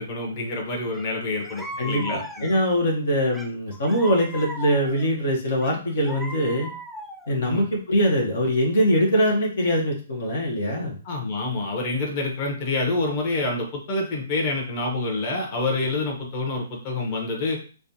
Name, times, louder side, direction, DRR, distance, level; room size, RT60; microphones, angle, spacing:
voice 1, 0.0-2.5 7.4-7.6 11.0-17.6, left 2 dB, 40° left, 0 dB, 1.2 m, -27 dB
sound 1, 0.9-1.1 1.4-2.8 3.3-5.1 5.6-7.4, equal, ahead, 0.4 m, -37 dB
voice 2, 1.8-6.7 7.3-11.0, equal, 65° left, 0 dB, 1.1 m, -23 dB
4.8 x 2.3 x 2.8 m, 0.38 s
figure-of-eight pair, 125°, 0 cm